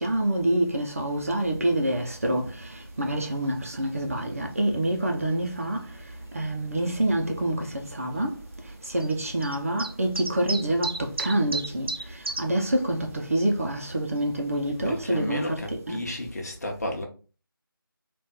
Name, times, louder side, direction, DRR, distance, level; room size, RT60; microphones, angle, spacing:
voice 1, 0.0-2.4 3.0-5.8 6.3-8.3 8.9-11.9 12.4-15.6 15.9-16.0, right 1 dB, 40° right, 0.7 m, -26 dB
sound 1, 1.4-15.3, right 2 dB, 85° right, 0.6 m, -40 dB
voice 2, 14.8-17.0, left 1 dB, 45° left, 1.0 m, -32 dB
3.6 x 2.5 x 4.3 m
figure-of-eight pair, 170°, 12 cm